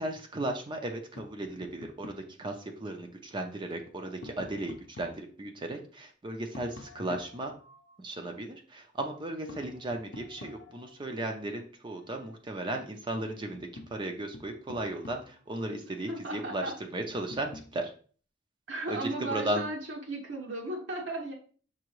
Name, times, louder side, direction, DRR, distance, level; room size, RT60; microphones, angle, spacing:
voice 1, 0.0-7.5 8.0-17.9 18.9-19.6, right 1 dB, 25° right, 4 dB, 0.5 m, -36 dB
Tap, 1.2-2.3 3.7-5.3 6.5-8.0 9.5-11.0 12.8-12.9 13.3-15.5 17.1-17.8, left 2 dB, 65° left, 0.6 m, -48 dB
voice 2, 16.1-16.7 18.7-21.3, right 2 dB, 75° right, -1 dB, 1.0 m, -35 dB
6.0 x 2.7 x 3.0 m, 0.42 s
head